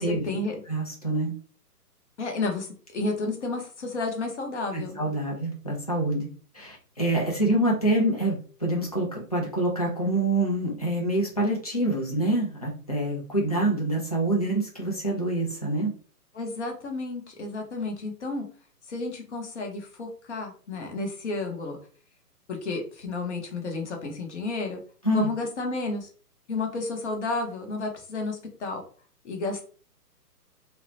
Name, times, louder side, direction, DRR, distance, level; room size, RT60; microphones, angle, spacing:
voice 1, 0.0-0.6 2.2-5.0 16.3-18.4 18.9-21.8 22.5-24.8 25.1-26.1 26.5-28.8 29.2-29.6, left 3 dB, 45° left, 3 dB, 0.9 m, -31 dB
voice 2, 0.7-1.3 4.7-6.3 6.5-15.9 25.0-25.3, right 1 dB, 25° left, -3 dB, 0.4 m, -26 dB
2.7 x 2.0 x 2.7 m, 0.40 s
figure-of-eight pair, 130°, 48 cm